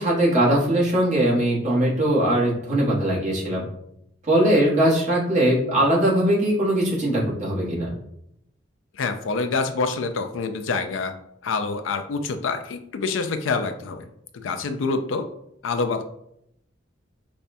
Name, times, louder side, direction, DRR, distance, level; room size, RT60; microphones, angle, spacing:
voice 1, 0.0-3.6 4.3-7.9, right 1 dB, 40° right, -5 dB, 1.2 m, -20 dB
voice 2, 8.9-11.1 11.4-14.1 14.3-15.3 15.6-16.0, left 4 dB, 85° left, 9 dB, 0.4 m, -26 dB
5.2 x 2.2 x 2.6 m, 0.76 s
head